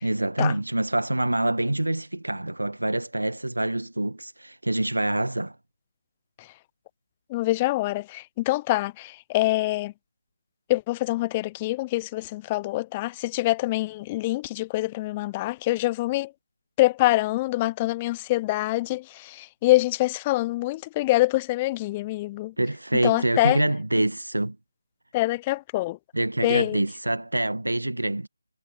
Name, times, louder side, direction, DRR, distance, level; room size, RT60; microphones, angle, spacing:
voice 1, 0.0-5.6 22.6-24.6 26.1-28.3, right 1 dB, 80° right, 1.2 m, -26 dB
voice 2, 7.3-9.9 10.7-16.3 16.8-22.5 23.0-23.6 25.1-26.0 26.4-26.8, left 18 dB, 15° left, 0.6 m, -25 dB
figure-of-eight pair, 160°, 0 cm